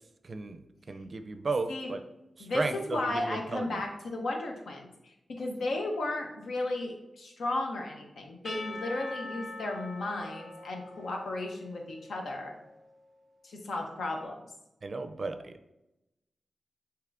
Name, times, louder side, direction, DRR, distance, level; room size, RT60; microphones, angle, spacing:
voice 1, 0.2-0.6 0.9-2.0 2.4-3.8 14.8-15.7, right 3 dB, 50° right, 9 dB, 0.4 m, -34 dB
voice 2, 2.4-12.5 13.4-14.4, left 2 dB, 85° left, 1 dB, 0.9 m, -34 dB
Percussion / Church bell, 8.4-12.8, left 2 dB, 25° left, 0.5 m, -43 dB
6.6 x 2.9 x 2.5 m, 0.92 s
cardioid pair, 70°, 0 cm